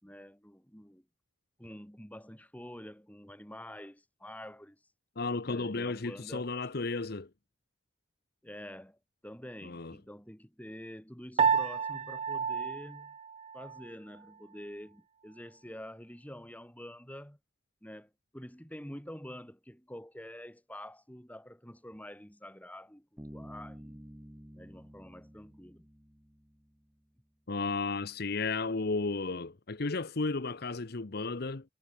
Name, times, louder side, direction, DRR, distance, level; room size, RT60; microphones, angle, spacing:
voice 1, 0.0-1.0 1.6-4.8 5.5-6.5 8.4-9.0 9.2-13.1 13.5-17.4 17.8-24.0 24.5-25.9, equal, 10° left, 4.3 m, -47 dB
voice 2, 5.2-7.3 9.6-9.9 27.5-31.6, left 3 dB, 55° left, 0.9 m, -33 dB
Piano, 11.4-13.9, right 6 dB, 30° right, 0.4 m, -30 dB
Bass guitar, 23.2-26.9, equal, 10° right, 1.4 m, -50 dB
head